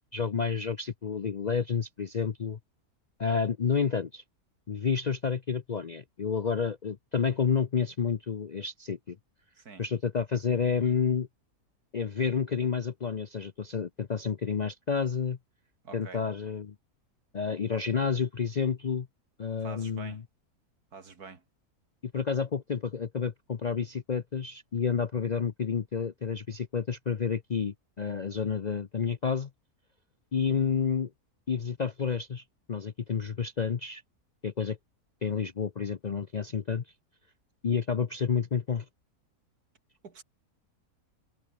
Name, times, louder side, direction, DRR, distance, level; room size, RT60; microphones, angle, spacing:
voice 1, 0.1-2.6 3.2-4.2 4.7-9.2 9.8-11.3 11.9-15.4 15.9-16.7 17.3-19.1 19.4-20.2 22.0-29.5 30.3-31.1 31.5-32.4 32.7-34.0 34.4-34.8 35.2-36.8 37.6-38.9, left 6 dB, 50° left, 0.5 m, -30 dB
voice 2, 15.8-16.2 19.6-20.2 20.9-21.4 40.0-40.2, right 5 dB, 85° right, 3.0 m, -46 dB
omnidirectional pair, 1.6 m